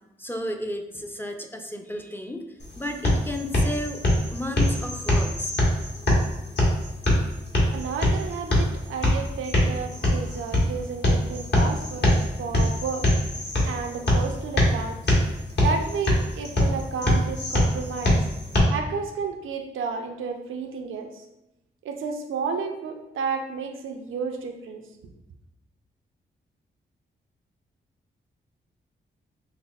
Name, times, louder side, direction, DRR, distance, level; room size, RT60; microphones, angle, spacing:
voice 1, 0.0-2.5 2.8-4.0 4.3-5.5, left 1 dB, 10° left, 4 dB, 0.4 m, -33 dB
sound 1, 2.6-18.6, left 1 dB, 55° left, 1.1 m, -24 dB
voice 2, 7.7-13.1 13.6-15.0 15.6-18.2 18.7-21.2 21.8-24.8, right 5 dB, 85° right, 3 dB, 0.5 m, -32 dB
5.4 x 2.0 x 2.4 m, 0.89 s
cardioid pair, 60°, 20 cm